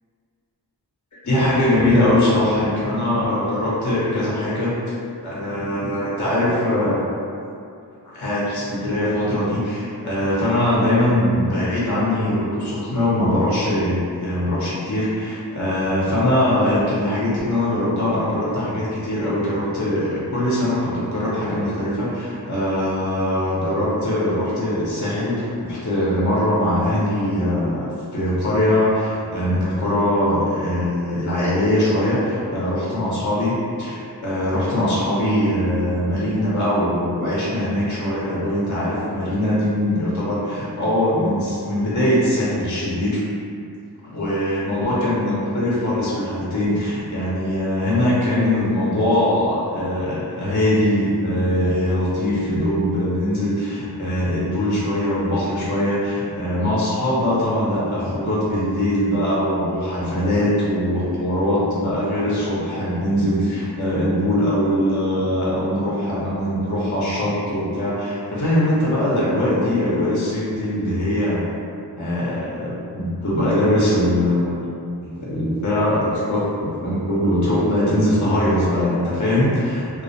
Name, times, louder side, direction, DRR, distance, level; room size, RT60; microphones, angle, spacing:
voice 1, 1.2-7.1 8.1-43.2 44.1-71.4 72.0-74.6 75.0-80.0, left 1 dB, 45° left, -7 dB, 0.6 m, -21 dB
2.3 x 2.0 x 2.6 m, 2.4 s
wide cardioid pair, 55°, 42 cm